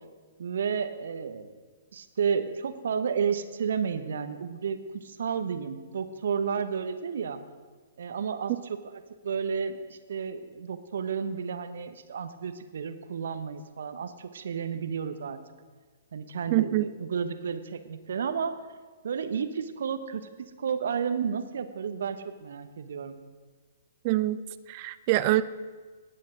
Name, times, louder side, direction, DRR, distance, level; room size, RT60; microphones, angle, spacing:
voice 1, 0.4-1.5 1.9-7.4 8.0-15.4 16.1-18.5 19.0-23.2, right 6 dB, 65° right, 10 dB, 0.9 m, -32 dB
voice 2, 16.5-16.9 24.0-24.4 24.7-25.4, right 16 dB, 40° right, 15 dB, 0.4 m, -24 dB
18.5 x 8.6 x 3.8 m, 1.4 s
figure-of-eight pair, 120°, 0 cm